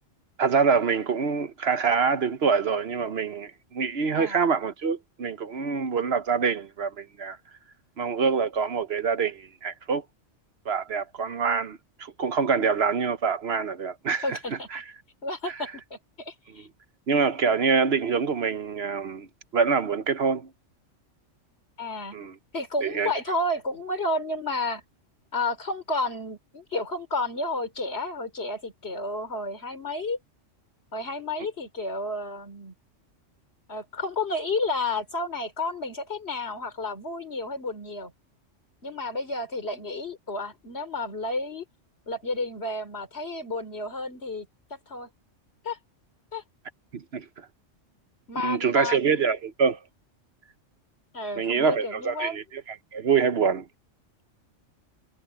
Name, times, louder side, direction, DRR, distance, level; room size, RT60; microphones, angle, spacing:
voice 1, 0.4-7.4 8.0-10.0 10.7-14.4 14.7-14.8 15.5-15.6 17.1-19.3 19.5-20.5 22.1-22.3 22.8-23.1 46.9-47.2 48.4-49.8 51.4-53.7, right 5 dB, 60° right, 1.1 m, -25 dB
voice 2, 14.2-14.7 15.2-16.7 21.8-22.2 22.5-24.8 25.3-30.2 30.9-32.7 33.7-38.1 38.8-41.7 42.1-44.5 44.9-45.1 45.6-45.8 46.3-46.4 48.3-49.3 51.1-52.4, left 2 dB, 55° left, 3.5 m, -31 dB
omnidirectional pair, 1.3 m